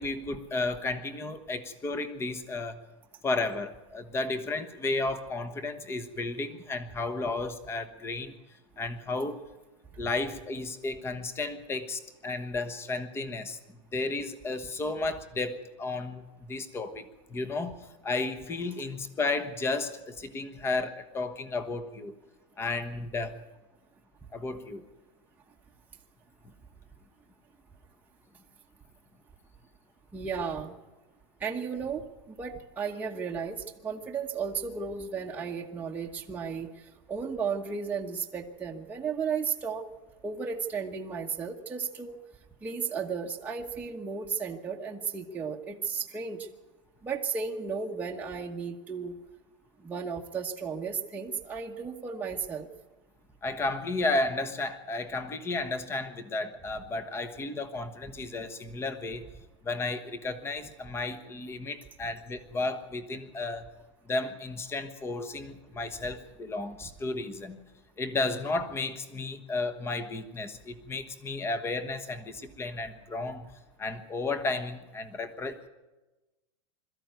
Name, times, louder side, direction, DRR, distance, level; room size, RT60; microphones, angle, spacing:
voice 1, 0.0-2.8 3.2-8.4 8.8-9.4 10.0-22.1 22.6-23.4 24.3-24.8 53.4-59.3 59.6-63.7 64.1-67.6 68.0-73.5 73.8-75.6, left 3 dB, 15° left, 11 dB, 1.2 m, -33 dB
voice 2, 30.1-30.7 31.4-32.0 32.4-36.7 37.1-39.8 40.2-42.2 42.6-46.5 47.0-49.1 49.8-52.7, right 6 dB, 10° right, -1 dB, 1.2 m, -34 dB
22.0 x 13.5 x 9.4 m, 1.1 s
supercardioid pair, 155°, 17 cm